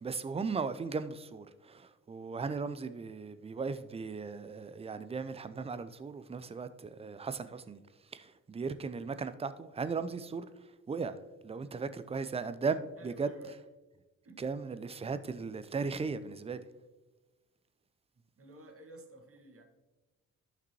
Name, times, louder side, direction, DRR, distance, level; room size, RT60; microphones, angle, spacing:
voice 1, 0.0-7.8 8.1-10.5 10.9-11.2 11.4-13.3 14.4-16.6, right 4 dB, 15° right, 0.5 m, -37 dB
voice 2, 13.0-13.5 14.2-14.4 18.4-19.6, right 2 dB, 35° right, 1.7 m, -52 dB
13.5 x 5.9 x 3.0 m
figure-of-eight pair, 40°, 40 cm